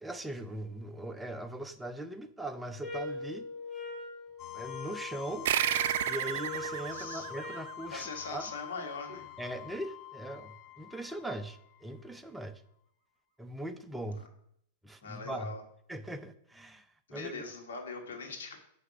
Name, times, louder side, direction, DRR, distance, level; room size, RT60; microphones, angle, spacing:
voice 1, 0.0-3.5 4.5-5.5 6.0-8.5 9.1-12.6 13.4-14.2 14.8-15.6 15.9-16.9 17.1-17.4, right 1 dB, 5° right, 8 dB, 0.6 m, -40 dB
sound 1, 2.8-7.7, left 2 dB, 15° left, 1.7 m, -43 dB
sound 2, 4.4-12.2, left 16 dB, 35° left, 0.5 m, -46 dB
sound 3, 5.5-8.4, right 11 dB, 65° right, 0.4 m, -32 dB
voice 2, 6.9-7.3 7.9-9.3 15.0-15.6 17.1-18.6, left 4 dB, 85° left, 2 dB, 1.9 m, -41 dB
9.4 x 3.4 x 6.0 m, 0.72 s
hypercardioid pair, 135°, 0 cm